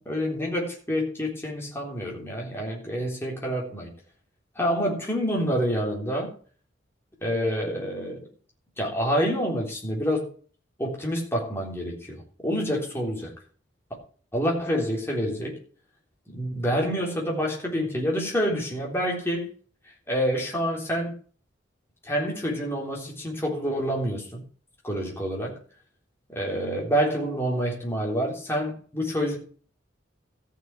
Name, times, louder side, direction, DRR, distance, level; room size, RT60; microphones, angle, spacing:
voice 1, 0.0-3.9 4.5-6.3 7.2-8.2 8.8-10.2 10.8-13.3 14.3-15.6 16.3-19.5 20.1-21.1 22.0-24.4 24.8-25.6 26.3-29.4, equal, 15° left, -2 dB, 3.5 m, -27 dB
14.0 x 6.3 x 6.0 m, 0.42 s
head